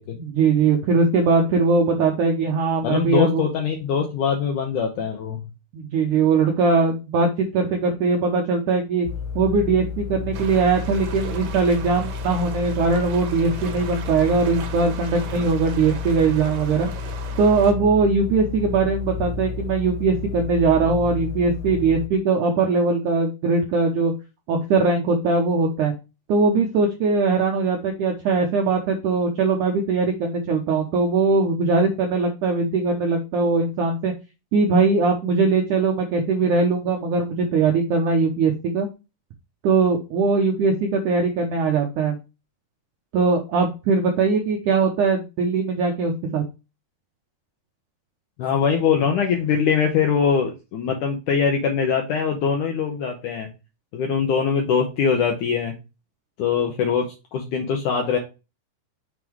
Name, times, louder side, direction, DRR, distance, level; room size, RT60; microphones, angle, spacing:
voice 1, 0.1-3.5 5.7-9.1 9.3-16.9 17.4-24.1 24.5-25.9 26.3-34.1 34.5-38.9 39.6-42.2 43.1-46.4, right 4 dB, 80° right, 2 dB, 1.8 m, -21 dB
voice 2, 2.8-5.4 48.4-53.5 53.9-55.8 56.4-58.2, left 6 dB, 75° left, 3 dB, 1.9 m, -22 dB
sound 1, 9.1-22.1, left 6 dB, 90° left, 1.9 m, -31 dB
sound 2, 10.3-17.7, right 7 dB, 65° right, 2.4 m, -38 dB
6.8 x 3.8 x 4.5 m, 0.28 s
omnidirectional pair, 4.8 m